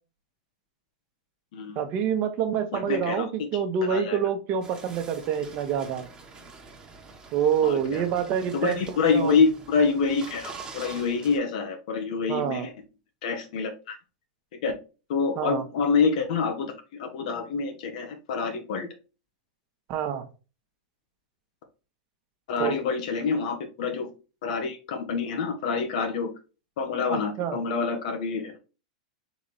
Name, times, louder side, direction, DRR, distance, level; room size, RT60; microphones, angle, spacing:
voice 1, 1.8-6.0 7.3-9.4 12.3-12.7 15.4-15.6 19.9-20.2 22.6-22.7 27.1-27.6, right 8 dB, 45° right, 7 dB, 1.0 m, -27 dB
voice 2, 2.7-3.2 3.9-4.2 7.6-8.0 8.5-12.7 13.2-14.0 14.6-14.7 15.1-16.7 17.0-18.9 22.5-24.1 24.4-26.3 26.8-28.6, left 5 dB, 65° left, 5 dB, 0.9 m, -26 dB
sound 1, 4.6-11.4, right 4 dB, 20° right, 1.2 m, -45 dB
4.0 x 3.0 x 4.0 m, 0.32 s
hypercardioid pair, 110°, 4 cm